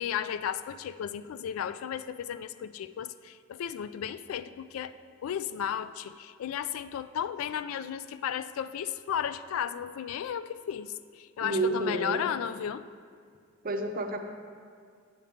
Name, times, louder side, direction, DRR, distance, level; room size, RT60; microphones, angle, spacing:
voice 1, 0.0-4.9 5.2-12.8, left 8 dB, 90° left, 14 dB, 0.3 m, -34 dB
voice 2, 11.4-12.2 13.6-14.2, right 2 dB, 45° right, 4 dB, 0.5 m, -30 dB
8.1 x 7.0 x 3.5 m, 2.2 s
head